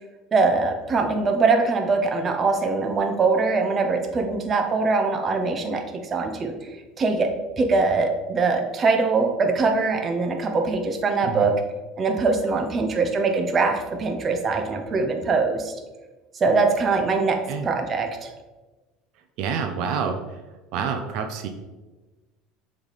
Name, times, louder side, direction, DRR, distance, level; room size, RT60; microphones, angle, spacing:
voice 1, 0.3-5.8 6.1-6.5 7.0-7.3 7.6-11.5 12.0-15.7 16.4-18.3, right 4 dB, 30° right, 4 dB, 0.7 m, -22 dB
voice 2, 19.4-20.4 20.7-21.5, right 6 dB, 60° right, 5 dB, 0.6 m, -27 dB
6.9 x 3.3 x 4.1 m, 1.2 s
supercardioid pair, 130°, 0 cm